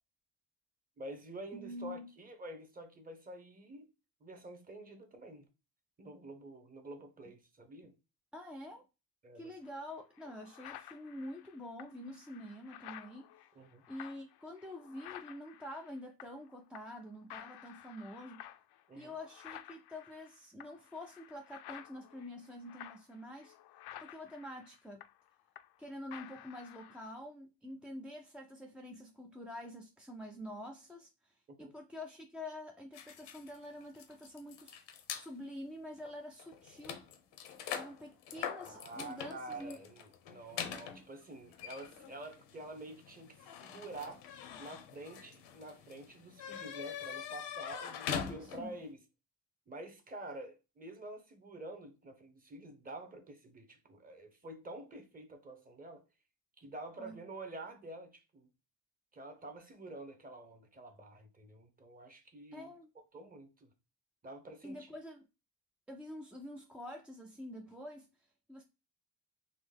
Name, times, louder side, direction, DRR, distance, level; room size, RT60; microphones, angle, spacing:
voice 1, 1.0-3.9 4.2-5.5 6.0-7.9 9.2-9.5 13.5-13.8 18.9-19.1 31.6-31.7 38.6-44.2 44.6-49.0 49.7-56.0 56.6-58.5 59.1-62.7 63.1-63.7 64.2-64.9, right 2 dB, 20° right, 0.9 m, -48 dB
voice 2, 1.5-2.1 8.3-8.9 9.3-13.3 13.9-18.4 18.9-23.5 24.0-25.0 25.8-34.8 35.1-37.0 37.8-39.8 48.3-48.7 57.0-57.2 62.5-62.9 64.6-65.3 65.9-68.1 68.5-68.6, left 1 dB, 5° right, 0.3 m, -47 dB
sound 1, 9.6-9.7 10.2-16.5 16.7-17.0 17.3-25.8 26.1-27.1, left 12 dB, 65° left, 0.5 m, -53 dB
sound 2, 32.9-35.3 36.0-36.1 36.4-48.8, left 8 dB, 90° left, 0.9 m, -44 dB
4.0 x 3.0 x 3.3 m
cardioid pair, 145°, 41 cm